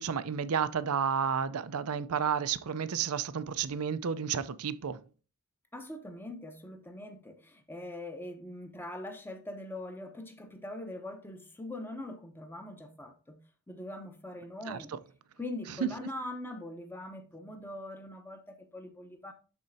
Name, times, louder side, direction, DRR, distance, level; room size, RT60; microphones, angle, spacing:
voice 1, 0.0-5.0 14.7-14.8 15.8-15.9, right 7 dB, 85° right, 0.5 m, -31 dB
voice 2, 5.7-13.4 13.7-14.9 15.4-19.3, left 1 dB, 10° left, 0.9 m, -42 dB
12.0 x 4.2 x 2.7 m
head